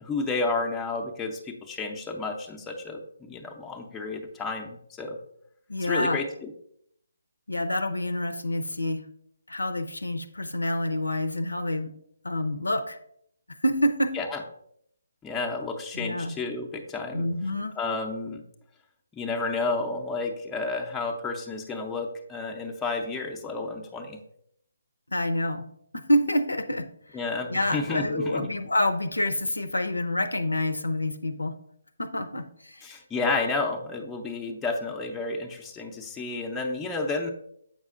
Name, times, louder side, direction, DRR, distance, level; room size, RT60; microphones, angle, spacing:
voice 1, 0.0-5.2 5.8-6.5 14.1-14.4 15.2-17.2 17.8-18.4 19.2-24.2 27.1-28.5 32.8-37.3, left 3 dB, 10° left, 1 dB, 0.6 m, -31 dB
voice 2, 5.7-6.2 7.5-9.0 9.5-11.9 12.2-13.0 13.6-14.1 15.9-16.3 17.1-17.8 25.1-25.6 25.9-26.9 27.5-31.5 32.0-32.9, left 1 dB, 90° left, 10 dB, 0.6 m, -27 dB
7.4 x 5.5 x 2.5 m, 0.70 s
figure-of-eight pair, 145°, 0 cm